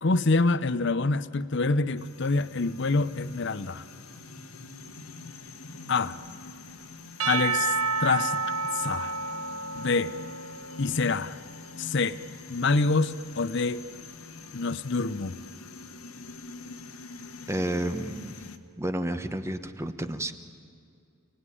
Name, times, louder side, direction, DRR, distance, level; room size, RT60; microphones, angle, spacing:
voice 1, 0.0-3.8 5.9-6.2 7.3-8.4 8.7-9.2 9.8-10.1 10.8-11.4 11.8-12.2 12.5-13.8 14.5-15.4, left 3 dB, 55° left, 0.7 m, -26 dB
sound 1, 2.0-18.6, left 3 dB, 80° left, 1.6 m, -45 dB
Percussion / Church bell, 7.2-11.4, right 4 dB, 85° right, 1.0 m, -30 dB
voice 2, 17.5-18.3 18.8-20.3, right 1 dB, 10° right, 1.1 m, -30 dB
29.0 x 19.0 x 9.9 m
head